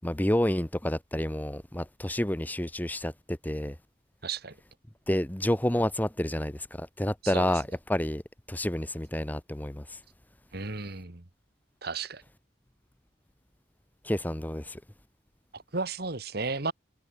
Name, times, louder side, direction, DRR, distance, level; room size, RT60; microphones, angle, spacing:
voice 1, 0.0-3.8 5.1-8.2 8.5-10.0 14.0-14.8, left 1 dB, 10° left, 1.0 m, -29 dB
voice 2, 4.2-4.6 7.2-7.5 10.5-11.2 11.8-12.2 15.5-16.7, right 4 dB, 55° right, 1.9 m, -34 dB
head